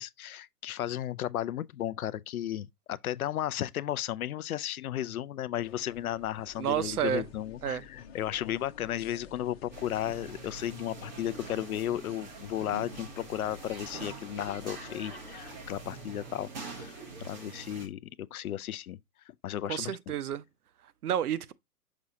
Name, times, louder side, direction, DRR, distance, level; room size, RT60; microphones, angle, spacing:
voice 1, 0.0-19.0 19.4-20.1, left 12 dB, 65° left, 0.5 m, -34 dB
sound 1, 5.6-16.1, left 7 dB, 40° left, 1.4 m, -52 dB
voice 2, 6.6-7.3 7.6-7.8 19.7-20.4 21.0-21.5, right 10 dB, 70° right, 0.7 m, -30 dB
sound 2, 9.7-17.9, right 3 dB, 30° right, 1.3 m, -44 dB
6.1 x 6.1 x 2.8 m
hypercardioid pair, 175°, 47 cm